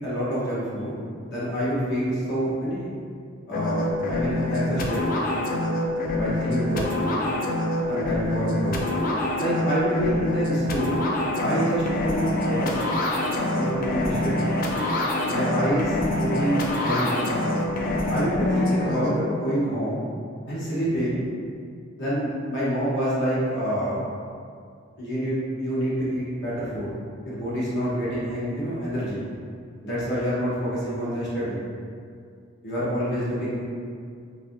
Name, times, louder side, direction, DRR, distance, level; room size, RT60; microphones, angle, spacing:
voice 1, 0.0-2.9 3.5-5.1 6.1-6.9 7.9-8.8 9.4-11.1 11.4-12.8 13.5-14.5 15.3-17.2 18.1-20.1 20.5-21.2 22.0-24.0 25.0-26.9 27.2-29.2 29.8-31.6 32.6-33.7, equal, 60° left, -9 dB, 0.8 m, -27 dB
sound 1, 3.5-19.1, left 1 dB, 45° left, 0.3 m, -25 dB
3.0 x 2.6 x 2.5 m, 2.2 s
head